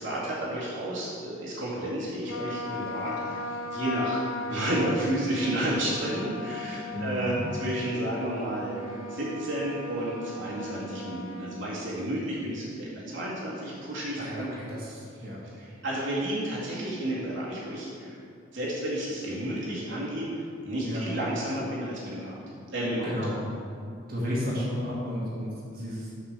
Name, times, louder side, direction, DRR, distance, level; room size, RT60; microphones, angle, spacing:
voice 1, 0.0-14.5 15.6-18.2 18.5-22.3 22.7-23.2, right 1 dB, 65° right, -7 dB, 2.0 m, -31 dB
Trumpet, 2.3-11.6, left 2 dB, 75° left, 0.7 m, -37 dB
voice 2, 6.9-7.4 14.2-15.4 20.8-21.0 23.0-23.4 24.1-26.1, equal, 50° right, -7 dB, 2.0 m, -33 dB
6.7 x 5.1 x 6.6 m, 2.4 s
head